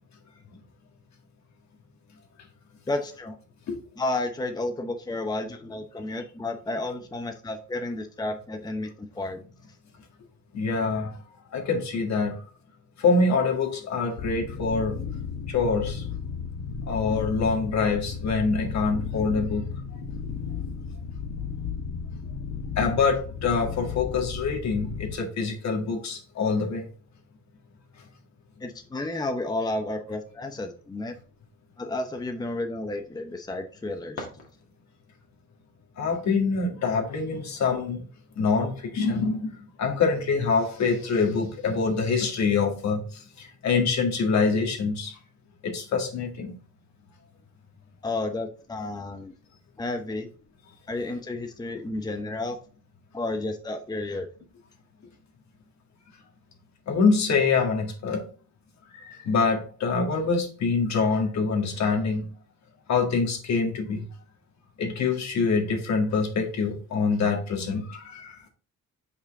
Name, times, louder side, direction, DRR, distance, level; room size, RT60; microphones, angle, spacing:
voice 1, 2.9-3.4 4.0-9.4 28.6-31.2 31.8-34.3 48.0-49.3 49.8-50.3 50.9-52.6 53.1-54.3, left 2 dB, 15° left, 0.8 m, -31 dB
voice 2, 10.5-11.2 11.5-12.4 13.0-15.0 15.5-16.1 16.9-19.7 22.8-26.9 36.0-38.0 38.4-45.1 45.6-46.6 56.9-58.2 58.9-62.3 62.9-64.1 64.8-68.5, left 4 dB, 65° left, 1.9 m, -25 dB
sound 1, 14.2-25.1, left 6 dB, 90° left, 1.0 m, -34 dB
sound 2, 33.6-35.1, left 3 dB, 50° left, 2.0 m, -43 dB
5.5 x 4.8 x 3.6 m
cardioid pair, 90°, 30 cm